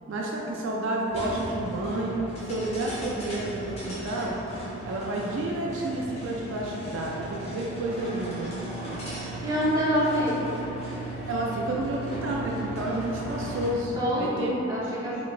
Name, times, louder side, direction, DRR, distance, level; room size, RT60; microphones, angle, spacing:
voice 1, 0.1-4.4 4.8-8.6 9.1-9.3 11.3-14.6 14.8-15.2, right 1 dB, 65° right, -2 dB, 0.3 m, -30 dB
sound 1, 1.1-13.9, right 1 dB, 30° left, 0.9 m, -36 dB
voice 2, 9.4-10.6 14.0-15.2, equal, 20° right, -8 dB, 0.7 m, -26 dB
4.0 x 3.2 x 2.3 m, 3.0 s
head